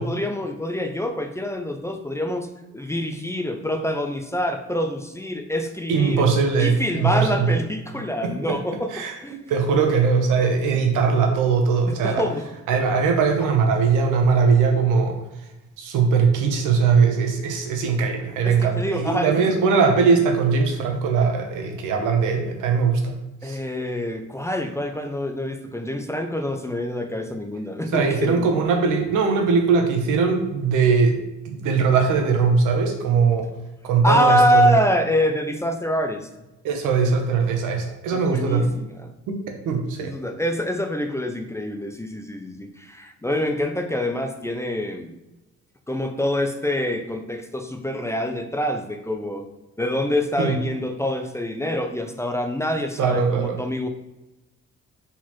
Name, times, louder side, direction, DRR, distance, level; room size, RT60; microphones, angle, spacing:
voice 1, 0.0-2.5 2.7-6.3 6.6-9.4 11.9-12.5 18.4-19.6 23.4-28.5 34.0-36.3 38.1-39.1 40.0-45.1 45.9-49.5 49.8-53.9, left 1 dB, 10° left, 5 dB, 0.5 m, -25 dB
voice 2, 5.9-7.5 8.2-8.6 8.9-9.1 9.5-12.2 12.7-15.1 15.8-23.1 23.4-23.6 27.9-31.2 31.4-33.5 33.8-34.8 36.6-38.7 39.3-39.4 39.6-40.1 50.4-50.6 53.0-53.6, right 5 dB, 90° right, 3 dB, 0.9 m, -20 dB
4.1 x 4.1 x 3.0 m, 0.99 s
cardioid pair, 90°, 30 cm